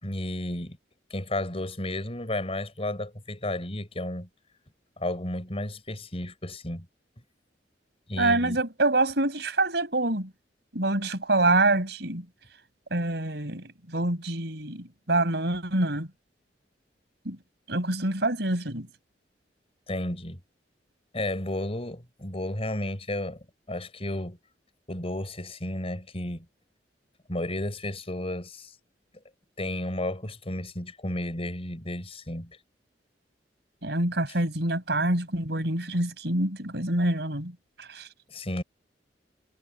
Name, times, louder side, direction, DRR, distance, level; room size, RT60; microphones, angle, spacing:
voice 1, 0.0-0.8 1.1-4.3 5.0-6.9 8.1-8.6 19.9-20.4 21.1-23.4 23.7-24.4 24.9-26.4 27.3-28.7 29.6-32.6 38.3-38.6, left 1 dB, 35° left, 4.9 m, -32 dB
voice 2, 8.2-10.3 10.7-12.3 12.9-16.1 17.2-17.4 17.7-18.9 33.8-38.1, right 2 dB, 70° right, 5.9 m, -26 dB
head